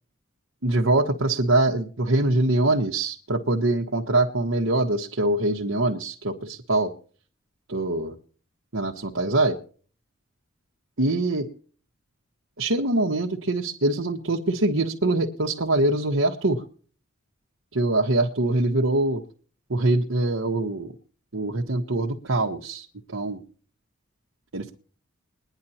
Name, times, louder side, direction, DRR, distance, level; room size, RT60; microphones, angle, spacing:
voice 1, 0.6-6.9 7.7-8.2 8.7-9.6 11.0-11.5 12.6-16.6 17.7-19.2 19.7-20.9 21.3-23.4 24.5-24.8, right 2 dB, 70° right, 0 dB, 1.3 m, -23 dB
22.0 x 10.5 x 2.8 m, 0.42 s
head